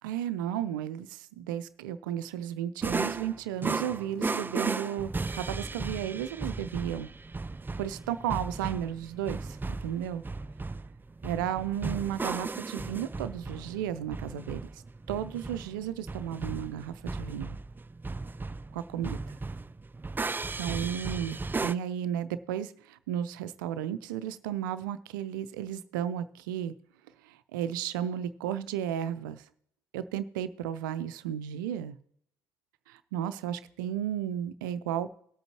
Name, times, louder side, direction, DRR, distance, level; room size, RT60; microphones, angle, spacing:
voice 1, 0.0-7.1 7.8-9.6 9.8-10.2 11.2-14.6 15.1-17.6 18.7-19.4 20.6-26.7 27.2-29.4 29.9-32.0 32.9-35.1, right 10 dB, 75° right, 14 dB, 0.5 m, -34 dB
sound 1, 2.8-21.8, right 3 dB, 20° right, 0.4 m, -36 dB
18.5 x 7.8 x 2.9 m, 0.70 s
figure-of-eight pair, 40°, 11 cm